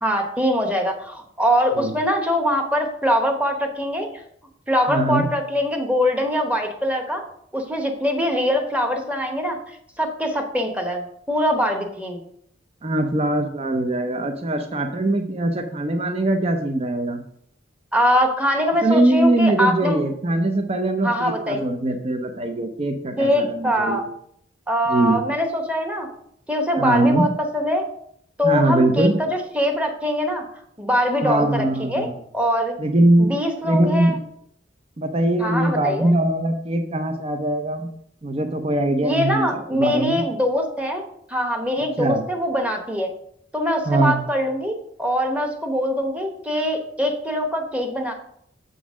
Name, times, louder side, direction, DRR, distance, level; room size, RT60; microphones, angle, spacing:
voice 1, 0.0-4.1 4.7-7.2 7.5-9.6 10.0-12.2 17.9-20.0 21.0-21.6 23.2-24.0 24.7-26.1 26.5-27.8 28.4-30.4 30.8-32.1 32.3-32.8 33.2-34.2 35.4-36.1 39.0-41.0 41.3-43.1 43.5-48.1, equal, 5° right, 4 dB, 1.0 m, -23 dB
voice 2, 4.9-5.3 12.8-17.2 18.8-24.0 24.9-25.2 26.8-27.3 28.4-29.2 31.2-32.1 32.8-34.1 35.0-37.9 38.2-40.2 42.0-42.2 43.9-44.2, right 1 dB, 35° right, 5 dB, 0.6 m, -21 dB
7.0 x 3.9 x 6.2 m, 0.70 s
head